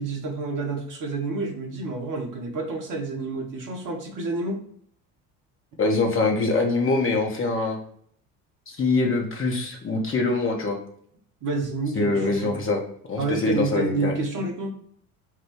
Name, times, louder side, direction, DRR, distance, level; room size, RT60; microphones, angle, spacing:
voice 1, 0.0-4.6 11.4-12.6 13.2-14.7, right 3 dB, 45° right, 1 dB, 1.2 m, -29 dB
voice 2, 5.8-7.8 8.7-10.8 11.9-12.8 13.1-14.1, left 3 dB, 30° left, 1 dB, 1.0 m, -24 dB
6.0 x 2.2 x 3.0 m, 0.63 s
hypercardioid pair, 60°, 46 cm